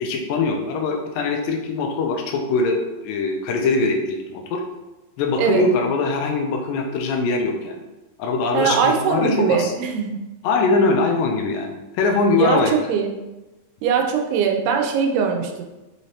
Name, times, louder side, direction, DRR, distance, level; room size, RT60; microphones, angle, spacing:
voice 1, 0.0-4.6 5.2-7.8 8.2-9.7 10.4-12.7, left 3 dB, 80° left, 2 dB, 2.0 m, -22 dB
voice 2, 8.5-10.2 12.4-13.1 13.8-15.6, right 6 dB, 90° right, 3 dB, 2.6 m, -21 dB
6.1 x 3.1 x 2.8 m, 1.0 s
omnidirectional pair, 4.5 m